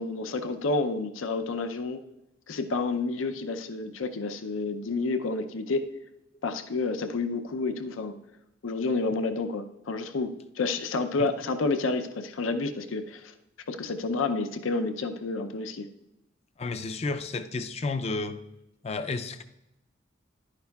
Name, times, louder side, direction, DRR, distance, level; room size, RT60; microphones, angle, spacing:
voice 1, 0.0-2.0 2.5-5.9 6.4-8.2 8.6-13.3 13.7-15.9, left 3 dB, 85° left, 8 dB, 0.6 m, -30 dB
voice 2, 16.6-18.4 18.8-19.4, left 3 dB, 30° left, 10 dB, 0.4 m, -31 dB
11.0 x 9.6 x 2.3 m, 0.89 s
head